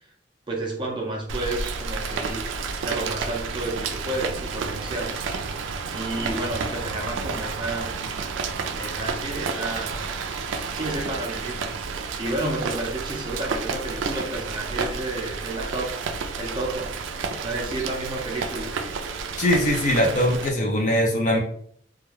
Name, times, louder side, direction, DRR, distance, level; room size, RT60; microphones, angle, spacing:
voice 1, 0.5-2.5 2.8-5.1 5.8-8.0 8.7-10.1 10.7-16.0 16.4-16.9 17.4-18.8, right 2 dB, 25° right, -1 dB, 0.5 m, -31 dB
Rain, 1.3-20.5, right 5 dB, 80° right, 0.3 m, -31 dB
voice 2, 19.4-21.4, equal, 40° left, -1 dB, 0.6 m, -21 dB
2.3 x 2.2 x 3.2 m, 0.64 s
head